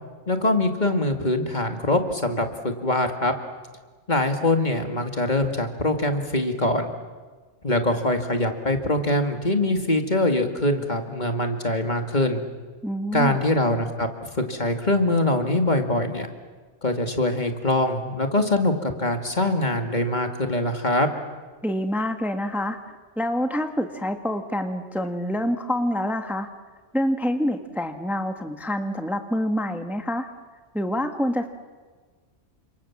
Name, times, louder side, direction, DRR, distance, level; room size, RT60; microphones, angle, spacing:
voice 1, 0.3-3.3 4.1-6.9 7.6-12.4 13.1-14.1 14.5-16.3 16.8-21.1, left 1 dB, 35° left, 5 dB, 2.4 m, -23 dB
voice 2, 12.8-13.4 21.6-22.8 23.2-26.5 26.9-30.3 30.7-31.5, equal, ahead, 6 dB, 1.4 m, -26 dB
30.0 x 27.0 x 7.4 m, 1.4 s
omnidirectional pair, 1.3 m